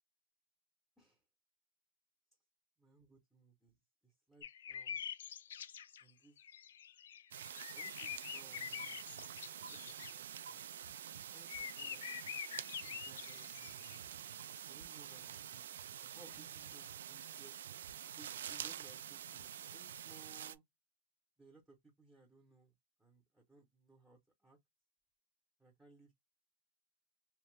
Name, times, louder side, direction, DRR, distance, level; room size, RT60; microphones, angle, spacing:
voice 1, 2.8-3.8 4.0-5.0 6.0-6.4 7.7-9.1 9.7-10.7 11.3-12.0 12.8-14.0 14.7-15.6 16.0-17.6 18.2-20.6 21.4-22.7 23.0-24.6 25.6-26.1, right 3 dB, 5° right, 0.8 m, -63 dB
sound 1, 4.4-6.1 6.4-10.1 11.0-14.1 15.1-15.2, left 9 dB, 80° left, 0.3 m, -46 dB
sound 2, 7.3-20.6, right 9 dB, 80° right, 0.3 m, -48 dB
2.7 x 2.2 x 3.1 m
supercardioid pair, 155°, 0 cm